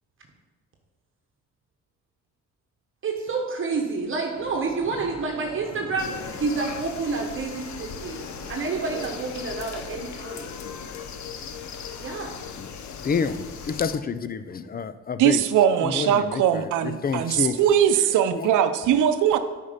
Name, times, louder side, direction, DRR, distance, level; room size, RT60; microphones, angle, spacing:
voice 1, 3.0-10.5 12.0-12.4, right 4 dB, 40° right, 2 dB, 1.2 m, -29 dB
sound 1, 4.3-10.0, left 1 dB, 85° left, 2.4 m, -43 dB
sound 2, 6.0-14.0, left 7 dB, 70° left, 0.8 m, -38 dB
voice 2, 13.0-15.4 15.8-17.6 18.3-18.5, left 5 dB, 30° left, 13 dB, 0.5 m, -28 dB
voice 3, 15.2-19.4, right 9 dB, 80° right, 10 dB, 0.7 m, -21 dB
8.5 x 5.2 x 5.1 m, 1.3 s
cardioid pair, 90°, 30 cm